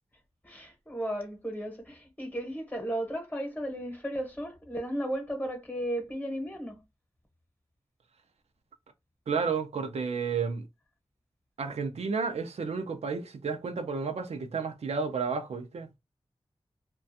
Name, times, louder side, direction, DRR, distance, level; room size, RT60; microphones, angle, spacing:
voice 1, 0.4-6.8, right 1 dB, 15° left, 0.9 m, -35 dB
voice 2, 9.3-10.6 11.6-15.9, right 5 dB, 90° right, 0.4 m, -31 dB
2.4 x 2.2 x 2.6 m
wide cardioid pair, 75°, 11 cm